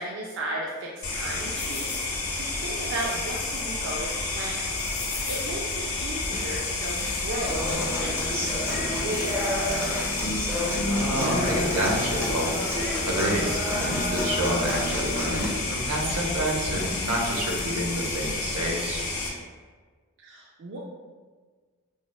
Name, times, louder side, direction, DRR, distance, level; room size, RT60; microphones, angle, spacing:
voice 1, 0.0-4.7 5.0-10.0 20.2-20.8, right 1 dB, 55° right, -2 dB, 0.3 m, -35 dB
sound 1, 1.0-19.3, left 3 dB, 70° left, 0.7 m, -30 dB
sound 2, 6.0-17.1, left 2 dB, 40° left, 0.3 m, -40 dB
Human voice / Acoustic guitar, 7.5-15.5, left 1 dB, 10° right, 0.6 m, -30 dB
voice 2, 10.9-12.5 13.1-19.0, right 1 dB, 85° right, -2 dB, 0.7 m, -28 dB
4.7 x 2.0 x 2.2 m, 1.5 s
head